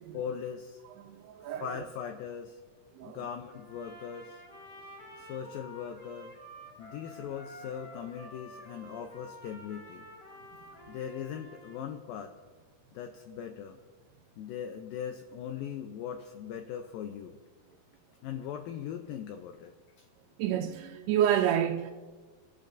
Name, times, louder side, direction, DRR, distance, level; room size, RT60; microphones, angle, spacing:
voice 1, 0.1-0.8 1.4-2.6 3.0-4.4 5.2-6.3 6.8-10.1 10.9-12.3 12.9-13.8 14.4-17.4 18.2-20.1, left 8 dB, 80° left, 2.2 m, -40 dB
voice 2, 1.0-1.8 3.0-3.2 20.4-21.9, right 10 dB, 85° right, 2.7 m, -29 dB
Trumpet, 3.5-11.8, equal, 45° left, 6.2 m, -50 dB
27.5 x 12.0 x 2.6 m
omnidirectional pair, 4.6 m